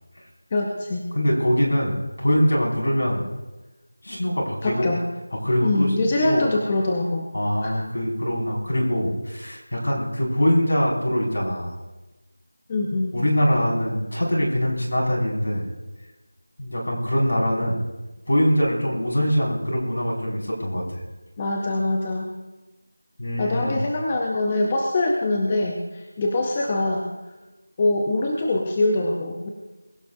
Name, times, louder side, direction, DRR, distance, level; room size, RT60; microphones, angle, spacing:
voice 1, 0.5-1.0 4.6-5.0 5.6-7.3 7.6-7.7 12.7-13.2 21.4-22.3 23.4-27.1 27.8-29.5, left 2 dB, 10° left, 1 dB, 0.6 m, -23 dB
voice 2, 1.1-3.3 4.0-4.9 5.4-5.9 6.2-6.4 7.3-11.7 13.1-15.7 16.6-17.8 18.3-21.0 23.2-23.8, equal, 60° left, -2 dB, 5.3 m, -23 dB
23.0 x 16.0 x 2.6 m, 1.1 s
figure-of-eight pair, 180°, 0 cm